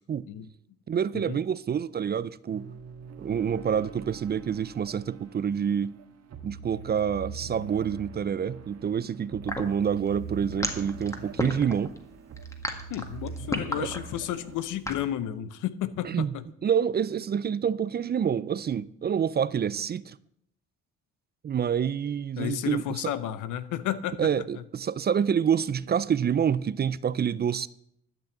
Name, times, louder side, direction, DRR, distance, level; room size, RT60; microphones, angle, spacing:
voice 1, 0.9-2.7 3.2-5.9 6.4-11.9 13.8-13.9 16.0-16.3 16.6-20.2 21.4-22.8 24.2-27.7, right 8 dB, 35° right, 0.4 m, -27 dB
sound 1, 2.5-14.6, right 5 dB, 60° right, 1.5 m, -43 dB
sound 2, 9.5-15.1, left 1 dB, 10° left, 1.7 m, -32 dB
voice 2, 12.9-16.4 22.4-24.2, left 11 dB, 80° left, 0.8 m, -32 dB
12.0 x 6.1 x 8.0 m
cardioid pair, 90°, 30 cm